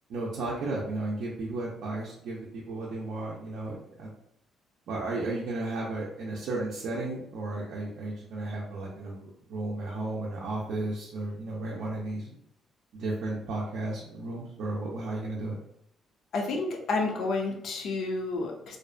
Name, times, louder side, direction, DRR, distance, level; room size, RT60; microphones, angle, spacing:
voice 1, 0.1-4.1 4.9-12.3 12.9-15.5, right 2 dB, 65° right, -5 dB, 0.5 m, -34 dB
voice 2, 16.3-18.8, left 3 dB, 60° left, 2 dB, 0.4 m, -30 dB
2.5 x 2.1 x 2.4 m, 0.72 s
cardioid pair, 160°, 0 cm